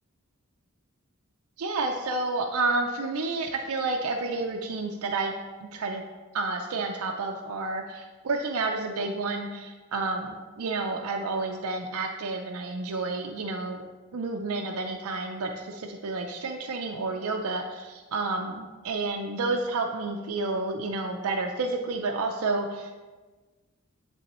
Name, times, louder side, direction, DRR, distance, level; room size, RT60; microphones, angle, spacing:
voice 1, 1.6-5.3 5.6-6.0 6.3-13.8 14.1-22.9, right 3 dB, 85° right, 2 dB, 0.5 m, -30 dB
10.0 x 3.4 x 3.0 m, 1.3 s
head